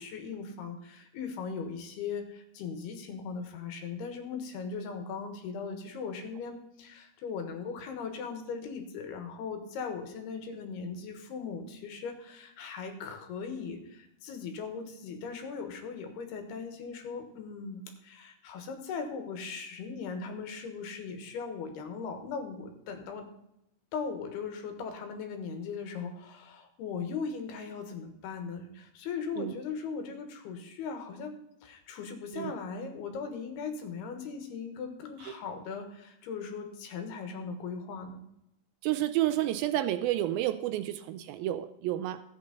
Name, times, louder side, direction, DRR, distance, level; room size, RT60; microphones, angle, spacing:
voice 1, 0.0-23.3 23.9-38.2, left 5 dB, 85° left, 6 dB, 3.4 m, -39 dB
voice 2, 38.8-42.2, right 13 dB, 80° right, 11 dB, 2.2 m, -30 dB
14.0 x 8.7 x 4.0 m, 0.82 s
omnidirectional pair, 4.5 m